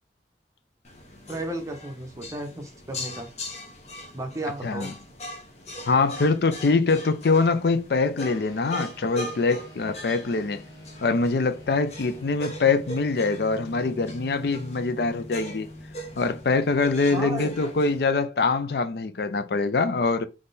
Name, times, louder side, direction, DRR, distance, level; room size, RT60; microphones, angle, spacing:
sound 1, 0.8-18.0, equal, 40° left, 1.1 m, -41 dB
voice 1, 1.3-3.3 4.1-4.9 17.1-17.7, right 1 dB, 20° right, 0.8 m, -34 dB
voice 2, 4.6-4.9 5.9-10.6 11.0-15.7 16.2-20.2, left 3 dB, 65° left, 0.4 m, -24 dB
sound 2, 8.3-18.0, left 1 dB, 25° left, 1.9 m, -45 dB
3.6 x 3.2 x 4.0 m
head